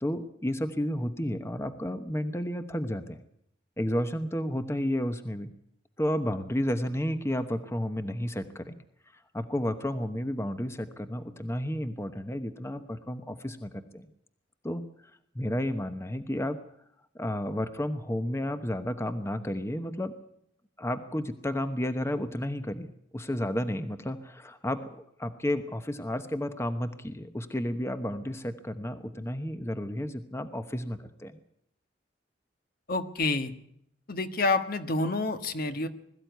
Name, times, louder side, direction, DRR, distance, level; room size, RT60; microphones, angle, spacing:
voice 1, 0.0-3.2 3.8-5.5 6.0-8.7 9.1-14.1 14.6-14.8 15.3-16.6 17.1-20.1 20.8-22.9 23.1-31.4, left 1 dB, 15° left, 9 dB, 1.0 m, -32 dB
voice 2, 32.9-33.5 34.1-35.9, left 3 dB, 55° left, 8 dB, 1.5 m, -28 dB
21.5 x 14.0 x 9.3 m, 0.73 s
head